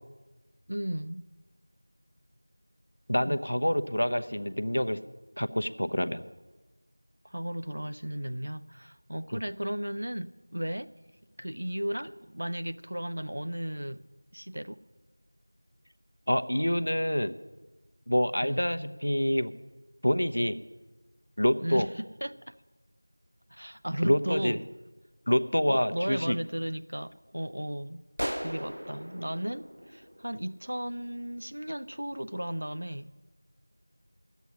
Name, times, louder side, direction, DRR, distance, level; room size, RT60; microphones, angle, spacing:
voice 1, 0.7-1.2 3.3-3.4 7.2-10.9 11.4-14.0 14.3-14.8 18.4-18.6 21.6-22.5 23.5-24.6 25.7-28.0 28.4-33.1, equal, 40° right, 11 dB, 0.4 m, -35 dB
voice 2, 3.1-5.0 5.4-6.2 9.3-9.4 16.3-17.4 18.1-19.5 20.0-20.6 21.4-21.9 24.0-24.6 25.3-26.4, equal, 60° left, 11 dB, 0.8 m, -27 dB
sound 1, 28.2-30.8, equal, 85° right, 0.5 m, -37 dB
11.0 x 8.1 x 9.9 m, 1.2 s
figure-of-eight pair, 180°, 0 cm